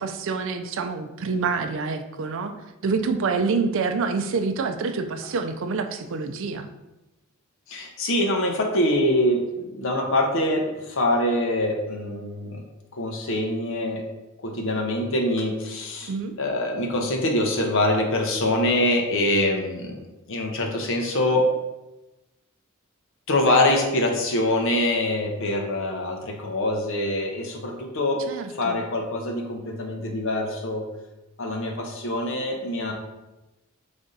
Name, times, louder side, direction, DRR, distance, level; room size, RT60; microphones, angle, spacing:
voice 1, 0.0-2.5 2.8-6.7 16.1-16.3 28.3-28.8, right 4 dB, 65° right, 7 dB, 0.4 m, -27 dB
voice 2, 7.7-12.6 12.9-14.0 14.4-16.1 16.4-20.0 20.3-21.5 23.3-28.2 28.5-30.8 31.4-32.9, left 1 dB, 65° left, 2 dB, 0.8 m, -24 dB
4.0 x 3.4 x 3.9 m, 1.0 s
head